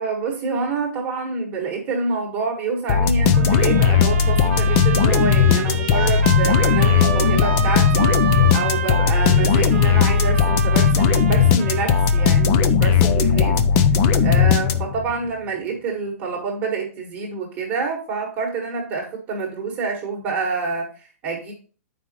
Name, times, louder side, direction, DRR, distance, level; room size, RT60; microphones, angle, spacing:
voice 1, 0.0-8.1 8.5-13.6 14.2-21.5, right 4 dB, 20° right, -1 dB, 1.5 m, -27 dB
sound 1, 2.9-15.1, left 6 dB, 25° left, 0.5 m, -17 dB
Trumpet, 3.3-12.5, right 10 dB, 50° right, 1.1 m, -30 dB
7.2 x 5.0 x 4.2 m, 0.37 s
hypercardioid pair, 170°, 8 cm